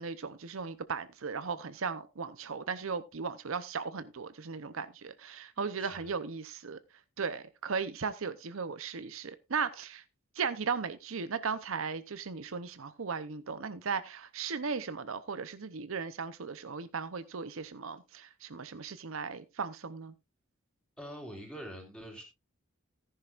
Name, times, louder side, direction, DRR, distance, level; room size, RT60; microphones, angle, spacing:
voice 1, 0.0-6.8 7.2-10.0 10.3-20.1, right 5 dB, 70° right, 0.7 m, -37 dB
voice 2, 5.8-6.1 21.0-22.2, equal, 5° left, 3.7 m, -44 dB
14.5 x 10.5 x 2.5 m
head